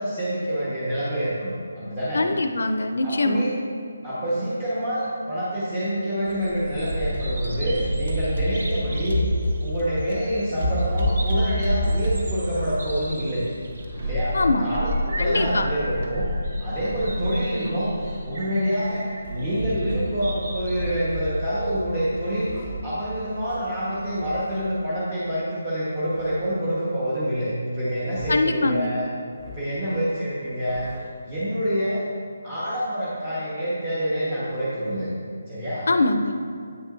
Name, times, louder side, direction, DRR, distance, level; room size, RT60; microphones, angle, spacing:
voice 1, 0.0-2.3 3.0-3.5 4.0-9.2 9.6-13.4 14.0-16.3 16.6-29.1 29.4-30.9 31.3-32.0 32.4-35.1 35.5-35.9, equal, 25° right, -10 dB, 1.2 m, -27 dB
voice 2, 2.1-3.4 14.3-14.7 15.2-15.7 28.3-28.9 35.9-36.3, left 2 dB, 75° left, 8 dB, 0.4 m, -22 dB
Bird vocalization bird call bird song, 6.3-24.4, equal, 55° right, 0.8 m, -29 dB
sound 1, 12.5-13.1 13.5-14.4 15.0-15.8 16.5-17.4 18.4-19.3 20.4-21.2 22.1-22.9 24.0-24.9 26.0-26.8 27.8-28.7 29.3-29.9 30.4-31.2, left 2 dB, 10° left, 0.6 m, -44 dB
8.0 x 6.0 x 2.6 m, 2.2 s
hypercardioid pair, 165°, 0 cm